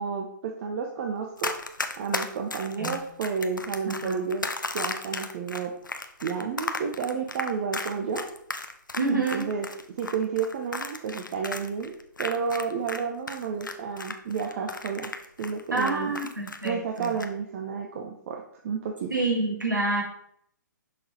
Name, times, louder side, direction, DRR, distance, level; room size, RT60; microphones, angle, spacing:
voice 1, 0.0-1.5 2.0-4.5 4.7-5.7 6.2-8.2 9.1-9.7 10.0-15.1 15.4-16.1 16.6-19.1, right 6 dB, 45° right, 2 dB, 0.7 m, -31 dB
Run, 1.4-13.0 13.3-16.7 17.0-17.3, left 3 dB, 85° left, 0.7 m, -34 dB
voice 2, 9.0-9.5 15.7-17.1 19.1-20.0, right 3 dB, 85° right, -2 dB, 2.1 m, -27 dB
6.3 x 3.9 x 4.3 m, 0.69 s
figure-of-eight pair, 130°, 10 cm